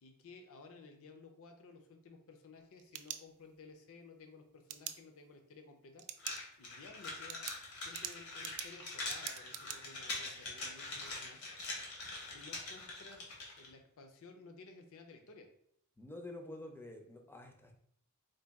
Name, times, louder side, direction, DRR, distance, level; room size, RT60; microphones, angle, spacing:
voice 1, 0.0-6.0 6.6-7.4 7.8-11.4 12.3-15.5, left 4 dB, 65° left, 4 dB, 0.5 m, -56 dB
sound 1, 2.5-3.7 4.7-4.9 6.0-6.4 6.8-6.9 7.3-9.8, right 11 dB, 70° right, 0.3 m, -44 dB
sound 2, 6.2-13.7, left 2 dB, 80° left, 1.1 m, -43 dB
voice 2, 16.0-17.8, left 1 dB, 10° left, 3 dB, 0.4 m, -48 dB
3.9 x 2.2 x 3.4 m, 0.67 s
head